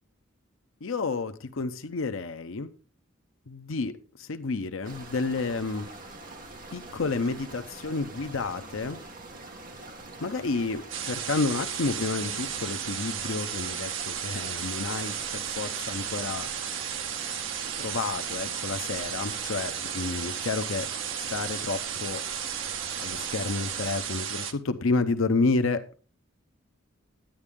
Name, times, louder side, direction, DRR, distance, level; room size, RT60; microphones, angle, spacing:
voice 1, 0.8-2.7 3.5-5.9 6.7-9.0 10.2-16.5 17.8-20.9 21.3-22.2 23.0-25.8, left 3 dB, 80° left, 9 dB, 0.7 m, -30 dB
sound 1, 4.8-24.0, right 2 dB, 40° right, 1.6 m, -44 dB
sound 2, 10.9-24.5, right 8 dB, 70° right, 0.9 m, -34 dB
10.0 x 9.8 x 3.6 m, 0.38 s
head